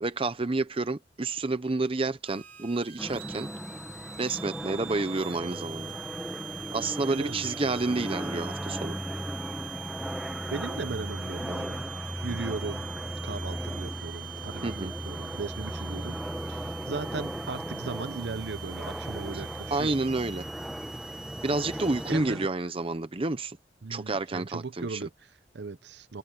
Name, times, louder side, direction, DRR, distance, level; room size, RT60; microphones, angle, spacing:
voice 1, 0.0-3.5 4.2-5.9 6.7-9.0 14.6-14.9 19.3-19.4 19.7-20.4 21.4-23.6 23.9-25.0, right 3 dB, 30° right, 0.7 m, -29 dB
sound 1, 2.2-22.1, right 11 dB, 50° right, 3.3 m, -43 dB
sound 2, 3.0-22.5, equal, ahead, 1.1 m, -37 dB
voice 2, 7.1-7.5 10.5-12.9 13.2-16.2 16.5-20.0 22.1-22.4 23.8-26.2, right 4 dB, 70° right, 0.7 m, -37 dB
head